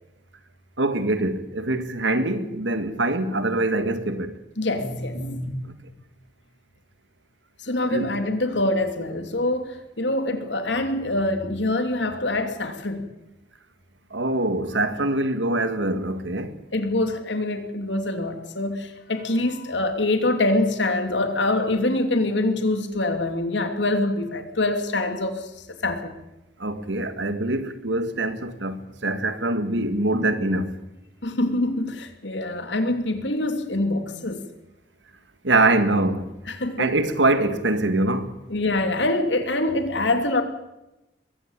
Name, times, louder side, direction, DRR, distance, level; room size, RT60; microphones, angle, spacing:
voice 1, 0.8-4.4 7.9-8.1 14.1-16.6 26.6-30.8 35.4-36.3 36.8-38.4, right 2 dB, 85° right, 1.9 m, -24 dB
voice 2, 4.6-5.7 7.6-13.1 16.7-25.5 25.8-26.2 31.2-34.4 36.5-36.9 38.5-40.4, left 2 dB, 75° left, 2.8 m, -25 dB
22.0 x 15.5 x 8.8 m
head